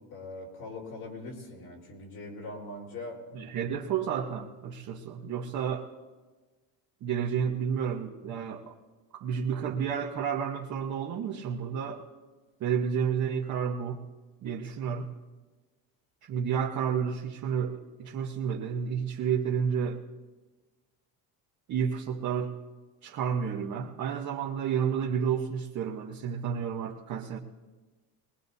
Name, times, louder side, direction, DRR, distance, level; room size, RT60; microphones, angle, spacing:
voice 1, 0.1-3.2, left 2 dB, 70° left, -2 dB, 4.2 m, -41 dB
voice 2, 3.3-5.9 7.0-8.7 9.1-12.0 12.6-14.0 14.4-15.1 16.2-20.0 21.7-22.5 23.0-27.4, right 7 dB, 50° right, -1 dB, 1.1 m, -31 dB
21.5 x 20.0 x 2.7 m, 1.3 s
cardioid pair, 150°, 38 cm